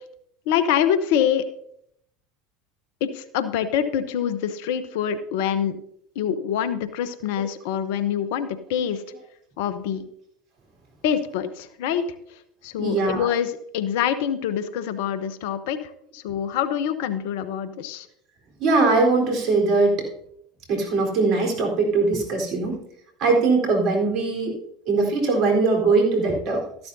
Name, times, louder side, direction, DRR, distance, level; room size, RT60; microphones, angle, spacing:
voice 1, 0.5-1.4 3.0-5.8 6.1-9.0 9.6-10.0 11.0-12.0 12.6-18.1, left 9 dB, 70° left, 12 dB, 0.9 m, -25 dB
voice 2, 12.8-13.3 18.6-20.1 20.7-22.8 23.2-24.6 24.9-26.6, right 3 dB, 55° right, 1 dB, 4.0 m, -21 dB
13.5 x 11.5 x 2.7 m, 0.71 s
hypercardioid pair, 80°, 0 cm